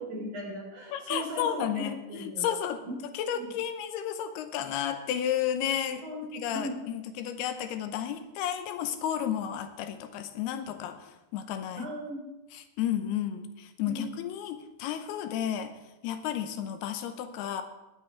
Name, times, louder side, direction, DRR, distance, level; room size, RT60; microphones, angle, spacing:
voice 1, 0.1-2.4 2.8-2.9 3.4-3.5 6.0-6.7 11.8-12.2 13.8-14.1, equal, 45° right, -1 dB, 4.7 m, -38 dB
voice 2, 0.9-2.8 3.1-6.1 6.3-11.9 12.5-15.7 16.0-17.6, left 9 dB, 85° left, 8 dB, 2.8 m, -32 dB
20.0 x 8.0 x 4.6 m, 1.1 s
omnidirectional pair, 4.6 m